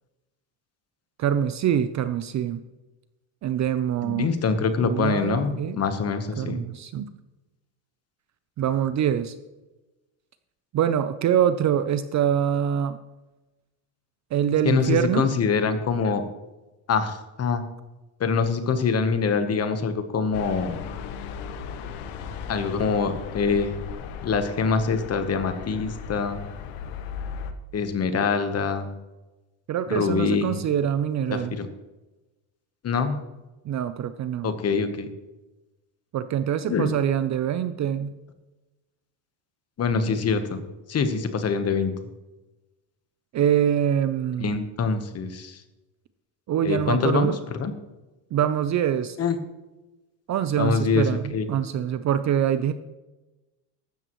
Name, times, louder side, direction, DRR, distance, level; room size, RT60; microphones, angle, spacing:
voice 1, 1.2-2.6 3.4-4.3 4.8-5.8 6.4-7.1 8.6-9.4 10.7-13.0 14.3-15.3 29.7-31.5 33.7-34.5 36.1-38.1 43.3-44.5 46.5-47.4 48.3-49.2 50.3-52.7, right 9 dB, 35° right, 11 dB, 0.5 m, -24 dB
voice 2, 4.0-6.6 14.6-16.2 16.9-17.6 18.2-20.8 22.5-23.7 24.2-26.4 27.7-28.9 29.9-30.6 31.3-31.7 32.8-33.1 34.4-35.1 36.7-36.9 39.8-40.6 40.9-41.9 44.4-45.6 46.6-47.3 47.6-47.7 49.2-49.4 50.6-51.5, left 5 dB, 30° left, 9 dB, 1.1 m, -24 dB
sound 1, 20.3-27.5, left 7 dB, 90° left, 1.3 m, -36 dB
15.0 x 12.5 x 3.1 m, 1.1 s
cardioid pair, 155°, 48 cm